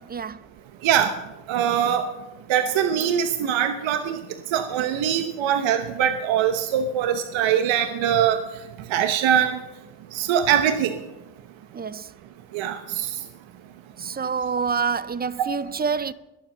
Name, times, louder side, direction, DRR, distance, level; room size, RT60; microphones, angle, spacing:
voice 1, 0.1-0.4 11.7-12.1 14.0-16.1, right 6 dB, 25° right, 0.4 m, -27 dB
voice 2, 0.8-1.1 1.5-2.0 2.5-4.2 4.5-8.4 8.9-9.6 10.1-10.9 12.5-13.2, right 9 dB, 90° right, 1.0 m, -22 dB
21.5 x 7.4 x 6.6 m
cardioid pair, 115°, 45 cm